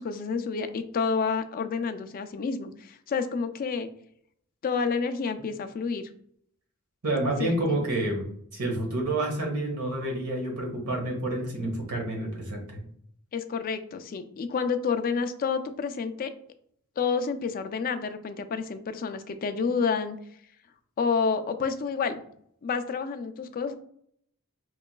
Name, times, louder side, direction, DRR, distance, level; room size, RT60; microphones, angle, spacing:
voice 1, 0.0-3.9 4.6-6.0 7.4-7.8 13.3-16.3 17.0-20.2 21.0-22.2 22.6-23.8, left 5 dB, 40° left, 8 dB, 0.3 m, -29 dB
voice 2, 7.0-12.8, right 1 dB, 80° right, 0 dB, 1.2 m, -29 dB
4.7 x 3.0 x 2.2 m, 0.66 s
head